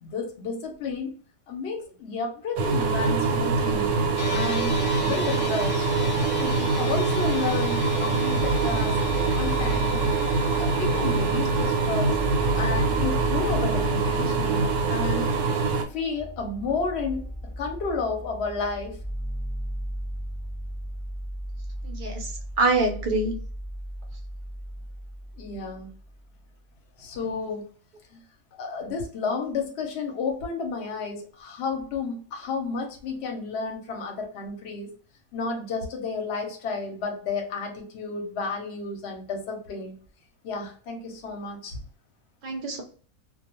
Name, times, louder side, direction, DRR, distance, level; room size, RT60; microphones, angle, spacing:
voice 1, 0.0-1.1 1.5-3.9 4.3-4.7 5.0-5.9 6.4-9.0 9.3-10.0 10.6-12.2 12.5-15.3 15.9-17.3 17.6-19.0 25.4-25.9 27.0-27.6 28.1-28.2 28.6-34.9 35.3-39.9 40.4-41.8, left 4 dB, 60° left, 3 dB, 0.8 m, -31 dB
sound 1, 2.6-15.8, right 4 dB, 90° right, 1.0 m, -24 dB
sound 2, 4.2-16.6, left 7 dB, 80° left, 1.0 m, -40 dB
sound 3, 8.4-26.3, equal, 10° left, 0.5 m, -36 dB
voice 2, 21.8-22.3 22.6-23.4 42.4-42.8, right 2 dB, 55° right, 2 dB, 0.5 m, -25 dB
2.2 x 2.2 x 2.9 m, 0.42 s
omnidirectional pair, 1.5 m